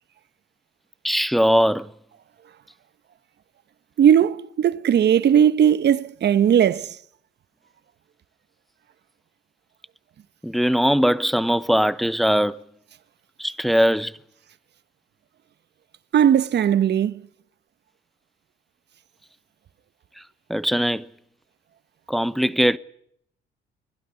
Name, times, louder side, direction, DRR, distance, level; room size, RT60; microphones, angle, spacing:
voice 1, 1.0-1.9 10.4-12.6 13.4-14.2 20.5-21.1 22.1-22.8, equal, ahead, 1.0 m, -20 dB
voice 2, 4.0-6.9 16.1-17.2, right 9 dB, 60° right, 1.2 m, -18 dB
23.5 x 16.5 x 9.9 m
cardioid pair, 90°, 20 cm